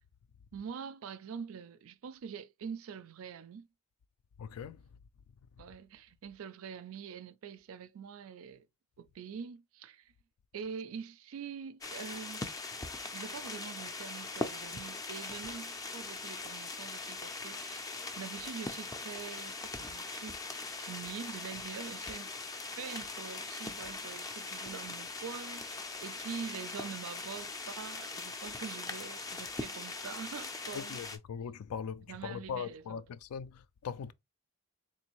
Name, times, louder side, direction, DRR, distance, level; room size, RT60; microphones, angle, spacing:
voice 1, 0.5-3.7 5.6-8.7 9.0-10.1 10.5-12.6 13.1-20.4 20.8-22.3 22.8-31.0 32.1-33.0, right 6 dB, 65° right, 0.3 m, -45 dB
voice 2, 4.4-4.8 30.7-34.1, left 7 dB, 85° left, 0.4 m, -40 dB
sound 1, 11.8-31.2, left 3 dB, 15° left, 0.4 m, -41 dB
3.6 x 2.6 x 2.9 m
head